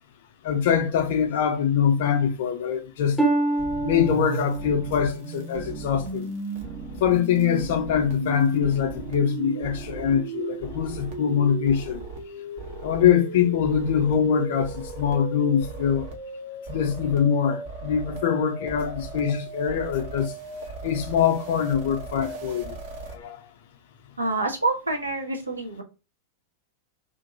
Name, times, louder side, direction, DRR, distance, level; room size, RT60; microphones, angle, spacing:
voice 1, 0.4-3.2 3.8-6.3 7.0-12.0 12.8-16.0 16.7-20.3 20.8-22.8 23.1-23.4, left 8 dB, 55° left, 0.5 m, -23 dB
Harp, 3.2-6.9 7.5-7.9 8.5-8.6, right 2 dB, 10° left, 0.6 m, -29 dB
sound 1, 3.6-23.1, right 3 dB, 50° right, 0.8 m, -36 dB
voice 2, 24.2-25.8, right 2 dB, 80° right, 0.6 m, -27 dB
2.5 x 2.5 x 2.6 m
figure-of-eight pair, 90°, 0 cm